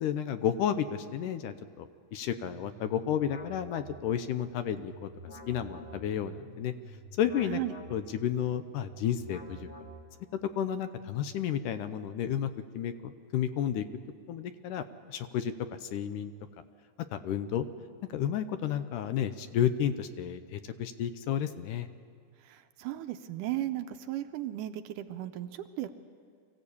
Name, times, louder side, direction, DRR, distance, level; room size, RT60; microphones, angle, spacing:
voice 1, 0.0-5.1 5.5-6.7 7.2-7.6 7.9-9.7 10.4-13.9 14.3-14.8 15.1-15.5 15.8-16.3 17.1-17.7 18.1-21.9, left 9 dB, 75° left, 11 dB, 2.1 m, -32 dB
sound 1, 2.3-10.4, right 1 dB, 25° left, 1.6 m, -49 dB
voice 2, 7.5-7.8 22.4-25.9, right 13 dB, 80° right, 9 dB, 2.1 m, -36 dB
24.0 x 15.5 x 8.5 m, 2.1 s
omnidirectional pair, 4.0 m